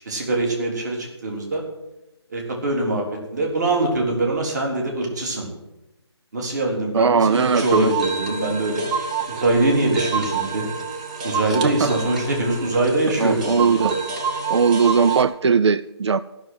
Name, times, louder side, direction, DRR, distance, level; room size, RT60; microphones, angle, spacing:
voice 1, 0.1-1.6 2.3-3.1 3.3-5.5 6.3-8.8 9.3-10.7 11.2-14.0, right 2 dB, 40° right, 0 dB, 3.7 m, -23 dB
voice 2, 6.9-7.9 11.6-11.9 13.2-13.9 14.5-16.2, right 5 dB, 75° right, 15 dB, 0.5 m, -19 dB
sound 1, 7.3-15.2, right 5 dB, 15° right, 0.7 m, -28 dB
15.0 x 6.2 x 9.6 m, 0.93 s
hypercardioid pair, 170°, 15 cm